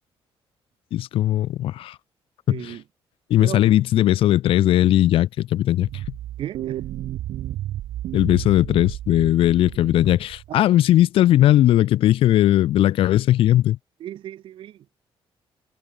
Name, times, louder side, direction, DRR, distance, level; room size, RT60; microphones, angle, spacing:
voice 1, 0.9-2.0 2.5-2.8 3.3-5.9 8.1-13.8, left 13 dB, 65° left, 0.4 m, -18 dB
voice 2, 2.5-2.8 3.4-3.7 6.4-6.8 10.5-10.6 14.0-14.7, right 12 dB, 55° right, 0.6 m, -34 dB
sound 1, 5.8-10.5, right 13 dB, 80° right, 1.7 m, -32 dB
cardioid pair, 175°, 10 cm